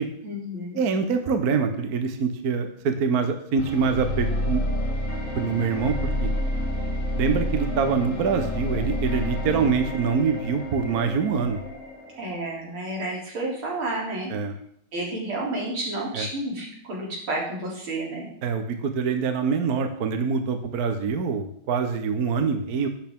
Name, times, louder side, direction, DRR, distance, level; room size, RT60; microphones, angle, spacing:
voice 1, 0.2-0.9 12.2-14.3 14.9-18.3, right 1 dB, 90° right, -3 dB, 4.1 m, -31 dB
voice 2, 0.7-4.6 5.3-6.3 7.1-11.6 14.3-14.6 16.1-16.3 18.4-22.9, right 5 dB, 55° right, 7 dB, 1.3 m, -25 dB
sound 1, 3.6-12.6, left 1 dB, 40° left, 1.8 m, -29 dB
12.0 x 8.7 x 3.6 m, 0.67 s
omnidirectional pair, 2.3 m